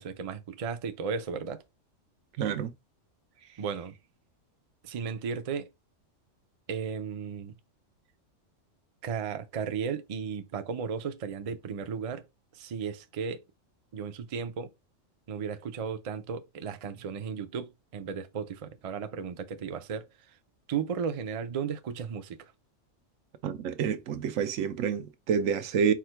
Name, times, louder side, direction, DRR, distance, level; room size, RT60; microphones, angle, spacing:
voice 1, 0.0-1.6 3.6-3.9 4.8-5.7 6.7-7.6 9.0-12.3 12.5-13.4 13.9-14.7 15.3-20.1 20.7-22.4, right 6 dB, 55° right, 0.3 m, -35 dB
voice 2, 2.4-2.7 23.4-25.9, right 7 dB, 90° right, 1.0 m, -28 dB
4.8 x 2.1 x 4.4 m
omnidirectional pair, 1.3 m